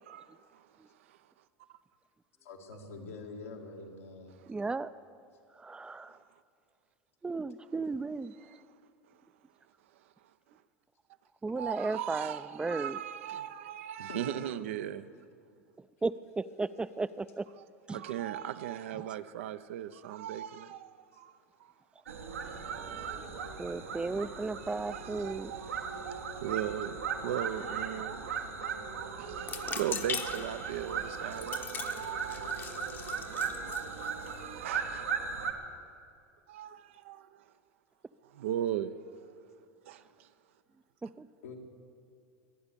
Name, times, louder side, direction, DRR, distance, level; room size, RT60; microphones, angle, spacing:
voice 1, 0.0-0.7 1.1-1.2 6.1-6.2 8.4-8.6 11.6-15.1 17.6-21.7 22.4-23.5 24.6-35.3 36.5-37.4 38.2-38.9 39.8-40.3, right 11 dB, 70° right, 0.6 m, -39 dB
voice 2, 2.4-4.4 14.1-14.5 41.4-41.6, left 3 dB, 85° left, 2.2 m, -45 dB
voice 3, 4.5-4.9 5.6-6.2 7.2-8.3 11.4-13.0 16.0-17.5 17.9-18.0 23.6-25.5 41.2-41.3, right 3 dB, 15° right, 0.5 m, -35 dB
sound 1, 22.1-35.5, right 6 dB, 90° right, 1.5 m, -38 dB
sound 2, 29.4-34.7, left 6 dB, 30° left, 0.9 m, -41 dB
23.5 x 8.9 x 6.9 m
hypercardioid pair, 85°, 7 cm